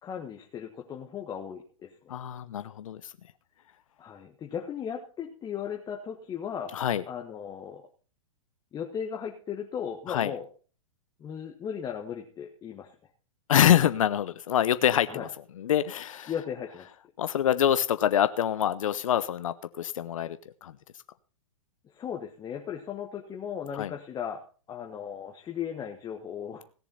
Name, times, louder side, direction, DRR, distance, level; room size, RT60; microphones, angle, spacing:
voice 1, 0.0-2.1 4.0-7.8 8.7-10.5 11.2-12.9 15.1-15.3 16.3-16.9 21.8-24.4 24.7-26.6, left 8 dB, 20° left, 1 dB, 1.5 m, -37 dB
voice 2, 2.1-3.1 6.7-7.0 10.1-10.3 13.5-15.3 15.6-16.3 17.2-20.7 23.7-23.9, left 10 dB, 70° left, 13 dB, 0.8 m, -25 dB
17.5 x 7.1 x 5.5 m, 0.39 s
hypercardioid pair, 120°, 18 cm